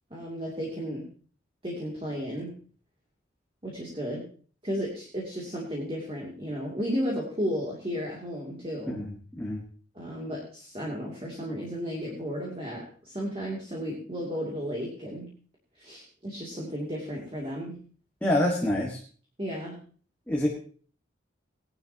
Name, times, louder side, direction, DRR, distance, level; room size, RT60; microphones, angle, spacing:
voice 1, 0.1-1.1 1.6-2.5 3.6-4.3 4.6-9.0 9.9-15.3 15.8-17.8 19.4-19.8, equal, 30° right, -3 dB, 2.7 m, -34 dB
voice 2, 8.9-9.6 18.2-19.0 20.3-20.5, left 1 dB, 10° left, -3 dB, 1.7 m, -27 dB
18.0 x 11.5 x 2.9 m, 0.42 s
head